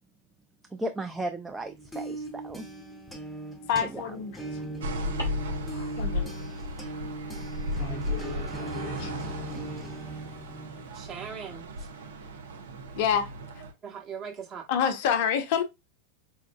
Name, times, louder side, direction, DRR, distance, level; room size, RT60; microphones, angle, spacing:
voice 1, 0.7-2.7 3.8-4.2, right 1 dB, 10° right, 0.3 m, -35 dB
sound 1, 1.6-11.2, right 2 dB, 5° left, 0.7 m, -39 dB
voice 2, 3.7-4.3 5.7-6.3 7.8-9.1 13.0-13.3 14.7-15.6, left 8 dB, 50° left, 0.5 m, -28 dB
sound 2, 4.8-13.7, equal, 65° right, 0.5 m, -36 dB
sound 3, 5.2-10.0, left 3 dB, 90° right, 1.3 m, -39 dB
voice 3, 10.9-11.9 13.8-14.6, right 6 dB, 30° right, 1.1 m, -40 dB
4.3 x 2.3 x 2.2 m
figure-of-eight pair, 90°, 0 cm